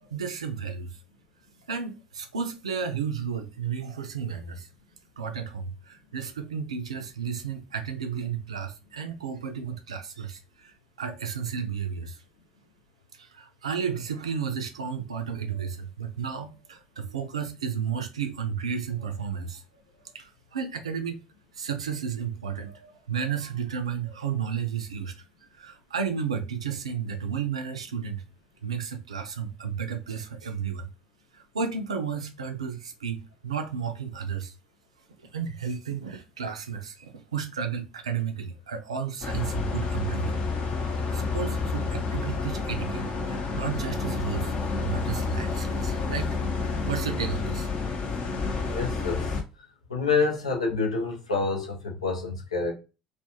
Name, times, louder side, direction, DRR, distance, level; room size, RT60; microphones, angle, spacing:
voice 1, 0.0-1.0 1.7-4.7 5.2-12.2 13.1-19.6 20.1-21.2 21.5-25.2 25.5-28.2 28.6-30.9 31.3-34.5 35.3-40.4 41.1-44.6 44.8-46.4 46.9-47.7, right 7 dB, 80° right, 0.4 m, -33 dB
sound 1, 39.2-49.4, left 4 dB, 40° left, 0.6 m, -29 dB
voice 2, 48.7-49.3 49.9-52.7, left 4 dB, 85° left, 0.6 m, -27 dB
2.3 x 2.2 x 2.8 m
figure-of-eight pair, 65°, 3 cm